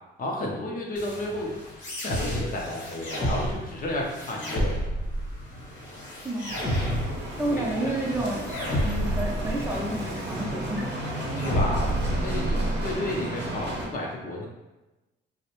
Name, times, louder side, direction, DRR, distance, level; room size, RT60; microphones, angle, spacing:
voice 1, 0.2-1.6 2.0-4.9 7.5-8.0 11.3-14.5, left 1 dB, 45° left, -1 dB, 0.6 m, -32 dB
sound 1, 1.0-13.0, equal, 60° left, 1.0 m, -31 dB
Bicycle, 6.5-13.9, right 1 dB, 60° right, 0.6 m, -34 dB
voice 2, 7.4-8.5 8.8-10.9 12.5-12.8, right 1 dB, 10° right, -3 dB, 0.5 m, -30 dB
2.5 x 2.0 x 2.9 m, 1.1 s
cardioid pair, 90°, 20 cm